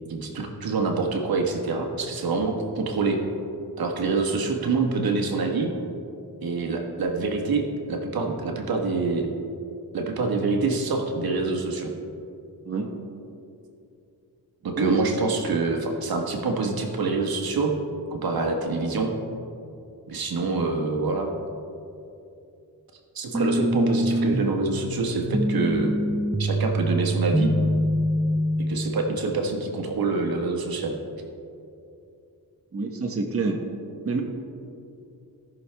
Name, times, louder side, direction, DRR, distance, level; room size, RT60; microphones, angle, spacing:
voice 1, 0.1-3.2 3.8-5.7 6.4-7.6 7.9-9.3 9.9-11.9 14.6-17.7 18.1-19.1 20.1-21.3 23.1-25.9 26.4-27.5 28.6-30.9, right 3 dB, 70° right, 2 dB, 1.4 m, -26 dB
sound 1, 23.3-29.3, equal, 5° right, 0.5 m, -25 dB
voice 2, 32.7-33.6 34.0-34.2, right 3 dB, 35° right, 1 dB, 1.1 m, -27 dB
17.5 x 6.3 x 3.4 m, 2.7 s
cardioid pair, 85°, 37 cm